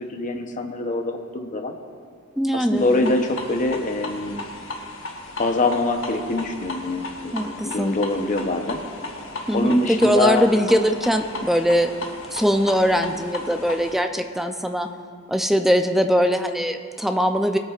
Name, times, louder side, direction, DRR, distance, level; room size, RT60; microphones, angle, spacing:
voice 1, 0.0-1.7 2.5-4.5 5.4-8.8 9.5-10.5, left 2 dB, 40° left, 4 dB, 0.8 m, -24 dB
voice 2, 2.4-3.1 7.3-8.0 9.5-11.9 12.3-14.9 15.3-17.6, equal, ahead, 6 dB, 0.5 m, -21 dB
sound 1, 2.8-14.0, left 2 dB, 85° left, 1.1 m, -35 dB
21.0 x 8.8 x 2.5 m, 2.3 s
head